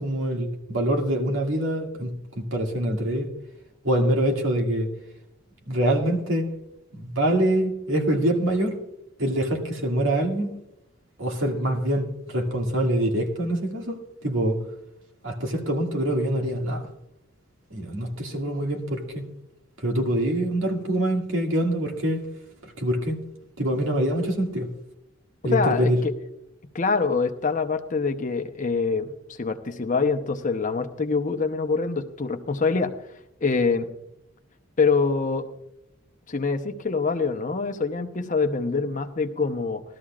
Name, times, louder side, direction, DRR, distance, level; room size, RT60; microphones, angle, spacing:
voice 1, 0.0-3.3 3.8-4.9 5.7-6.4 7.0-8.8 9.2-10.5 11.2-14.6 15.2-16.9 17.7-19.2 19.8-22.2 22.8-23.2 23.6-24.7 25.4-26.0, right 1 dB, 75° right, 1 dB, 2.1 m, -25 dB
voice 2, 25.5-26.1 26.7-29.1 29.4-32.9 33.4-33.9 34.8-35.5 36.3-39.8, left 4 dB, 40° left, 7 dB, 0.8 m, -25 dB
18.5 x 13.0 x 2.4 m, 0.83 s
head